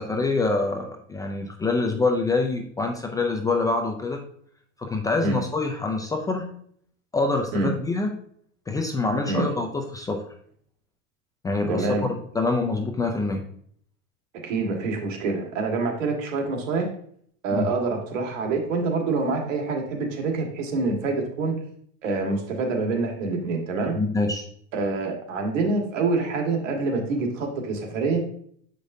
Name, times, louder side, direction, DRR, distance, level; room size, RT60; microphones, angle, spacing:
voice 1, 0.0-4.3 4.8-6.5 7.1-8.1 8.7-10.2 11.4-13.4 17.5-17.7 23.9-24.5, left 3 dB, 10° left, 3 dB, 0.3 m, -25 dB
voice 2, 11.7-12.1 14.4-16.9 17.4-21.6 22.0-24.0 24.7-28.2, right 3 dB, 85° right, 2 dB, 1.7 m, -26 dB
7.4 x 5.1 x 2.6 m, 0.62 s
supercardioid pair, 140°, 37 cm